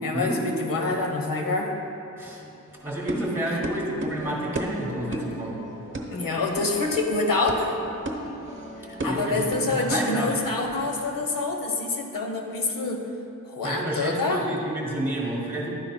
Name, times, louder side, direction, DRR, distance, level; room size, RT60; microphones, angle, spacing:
voice 1, 0.0-1.7 3.5-3.6 5.1-5.2 6.1-7.8 8.9-13.1 13.5-14.4, left 3 dB, 80° left, 2 dB, 1.1 m, -26 dB
sound 1, 2.7-10.3, right 2 dB, 35° right, 0.9 m, -34 dB
voice 2, 2.8-5.6 9.0-10.3 13.6-15.7, right 1 dB, 5° right, -3 dB, 2.1 m, -30 dB
sound 2, 4.2-11.3, left 1 dB, 25° left, 1.7 m, -42 dB
12.0 x 10.0 x 2.2 m, 2.9 s
wide cardioid pair, 100°, 33 cm